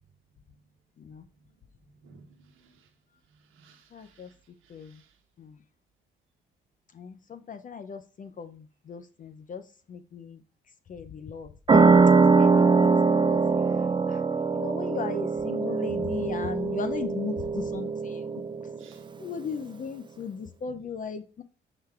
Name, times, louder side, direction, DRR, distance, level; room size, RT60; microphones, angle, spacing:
voice 1, 2.0-2.9 3.5-4.3 4.6-5.1 18.8-19.0 20.6-20.8, right 4 dB, 85° right, 1.3 m, -56 dB
voice 2, 3.9-4.3 4.7-5.0 5.4-5.6 6.9-10.4 10.9-11.9 12.4-12.9 13.2-13.4 14.1-14.2 14.5-18.2 19.2-21.4, left 6 dB, 40° left, 0.5 m, -37 dB
sound 1, 11.7-18.9, right 4 dB, 25° right, 0.4 m, -22 dB
8.8 x 4.9 x 2.4 m
cardioid pair, 90°, 20 cm